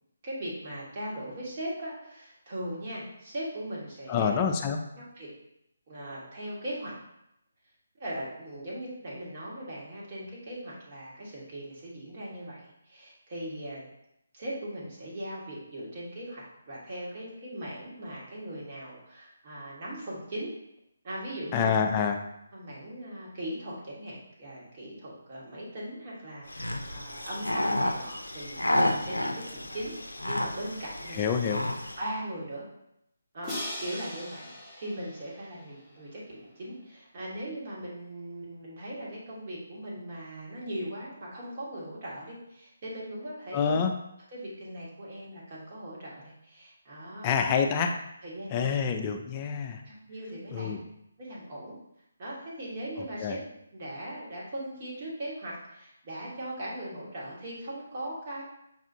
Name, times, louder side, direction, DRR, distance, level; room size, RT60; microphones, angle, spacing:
voice 1, 0.2-4.4 5.2-5.3 5.9-6.9 8.0-13.8 14.3-20.5 21.0-21.8 22.5-31.4 32.0-32.6 33.3-33.5 33.8-34.5 34.8-43.7 44.3-47.3 48.2-48.8 49.8-50.7 51.2-51.7 52.2-53.4 53.7-58.4, right 1 dB, 40° right, -5 dB, 1.4 m, -39 dB
voice 2, 4.1-4.8 21.5-22.2 31.1-31.6 43.5-43.9 47.2-48.0 48.5-49.8 50.5-50.8 53.2-53.4, left 6 dB, 25° left, 4 dB, 0.4 m, -27 dB
sound 1, 26.5-32.0, left 1 dB, 90° left, 0.4 m, -31 dB
Crash cymbal, 33.4-36.4, left 1 dB, ahead, 0.9 m, -40 dB
5.4 x 2.4 x 2.7 m, 0.80 s
figure-of-eight pair, 150°, 0 cm